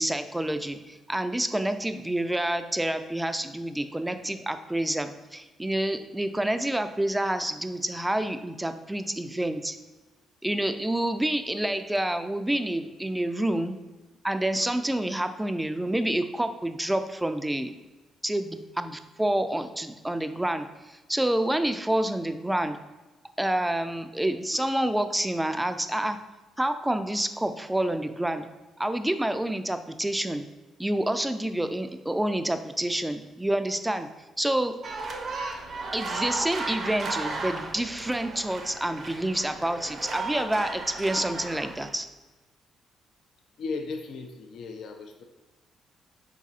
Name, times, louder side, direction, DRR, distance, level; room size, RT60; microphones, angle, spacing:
voice 1, 0.0-9.8 10.4-13.8 14.2-17.7 18.2-22.8 23.4-26.2 26.6-28.5 28.8-30.4 30.8-34.1 34.4-34.7 35.9-42.1, right 1 dB, 10° right, 9 dB, 0.3 m, -28 dB
sound 1, 34.8-41.9, right 3 dB, 55° right, 0.6 m, -35 dB
voice 2, 43.6-45.2, left 4 dB, 70° left, 4 dB, 0.4 m, -36 dB
4.6 x 4.1 x 2.4 m, 1.2 s
cardioid pair, 90°, 0 cm